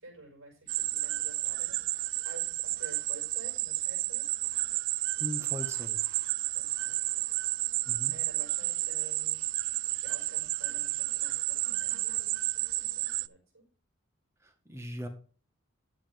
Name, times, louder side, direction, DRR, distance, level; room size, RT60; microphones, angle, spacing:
voice 1, 0.0-4.2 6.5-7.4 7.7-9.5 9.9-13.7, right 2 dB, 85° right, 0 dB, 5.8 m, -51 dB
sound 1, 0.7-13.3, right 17 dB, 60° right, 0.4 m, -31 dB
voice 2, 5.2-6.0 7.8-8.1 14.4-15.1, equal, 15° right, 6 dB, 1.6 m, -39 dB
11.5 x 7.8 x 3.6 m, 0.38 s
head